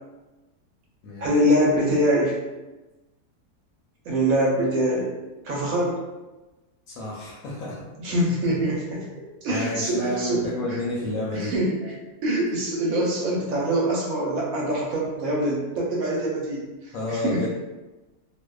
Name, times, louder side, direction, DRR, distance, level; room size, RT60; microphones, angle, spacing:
voice 1, 1.2-2.4 4.1-5.1 5.4-6.0 8.0-9.1 9.4-10.4 10.7-10.8 11.3-11.9 12.2-17.5, right 1 dB, 70° right, -3 dB, 1.0 m, -24 dB
voice 2, 6.9-8.2 9.5-11.5 16.9-17.5, left 1 dB, 70° left, -4 dB, 0.9 m, -30 dB
2.6 x 2.1 x 2.2 m, 1.1 s
omnidirectional pair, 1.7 m